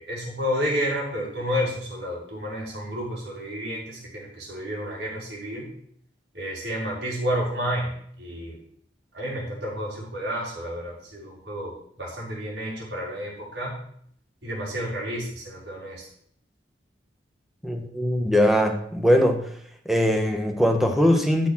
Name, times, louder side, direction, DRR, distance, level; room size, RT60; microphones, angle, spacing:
voice 1, 0.0-5.7 6.4-7.9 8.2-8.5 9.1-11.7 12.0-13.7 14.4-16.0, equal, 75° right, -4 dB, 5.4 m, -30 dB
voice 2, 17.6-19.5 19.8-21.5, equal, ahead, 4 dB, 1.4 m, -21 dB
12.0 x 6.7 x 6.3 m, 0.65 s
head